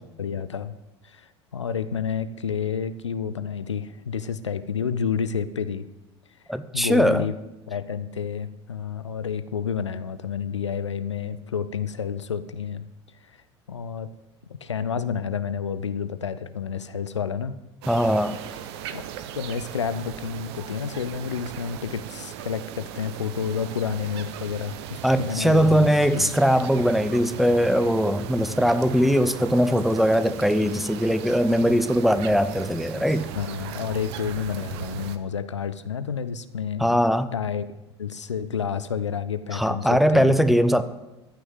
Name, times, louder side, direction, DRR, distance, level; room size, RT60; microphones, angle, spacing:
voice 1, 0.2-0.7 1.0-5.8 6.7-7.3 7.7-12.8 13.3-13.4 13.7-14.1 14.5-17.6 18.9-19.0 19.3-25.9 26.1-26.3 28.5-28.6 33.4-37.0 37.3-37.7 38.0-40.3, left 7 dB, 85° left, 13 dB, 0.5 m, -30 dB
voice 2, 6.5-7.3 17.9-18.4 25.0-33.3 36.8-37.3 39.5-40.8, equal, ahead, 12 dB, 0.8 m, -20 dB
sound 1, 17.8-35.2, right 10 dB, 65° right, 0.9 m, -38 dB
14.5 x 6.2 x 8.0 m, 1.0 s
figure-of-eight pair, 70°, 15 cm